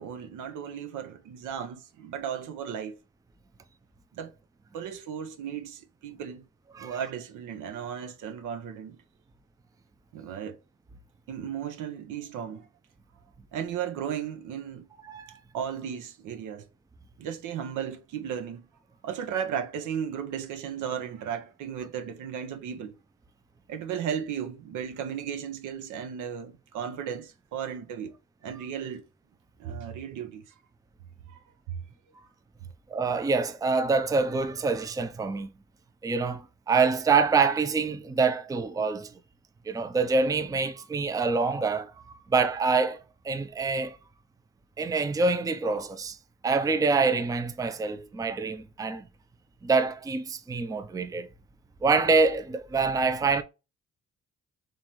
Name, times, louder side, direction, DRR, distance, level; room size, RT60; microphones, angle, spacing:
voice 1, 0.0-3.0 4.1-4.3 4.7-6.4 6.8-9.0 10.1-10.6 11.3-12.7 13.5-14.9 15.5-16.7 17.2-18.6 19.0-22.9 23.7-28.1 28.4-29.0 29.6-30.4 31.7-31.8, right 8 dB, 85° right, 0.8 m, -35 dB
voice 2, 32.9-35.5 36.0-39.1 39.7-41.9 42.3-44.0 44.8-46.2 46.4-49.1 49.6-51.3 51.8-53.4, right 4 dB, 10° right, 0.4 m, -26 dB
3.7 x 3.0 x 3.0 m
cardioid pair, 90°, 30 cm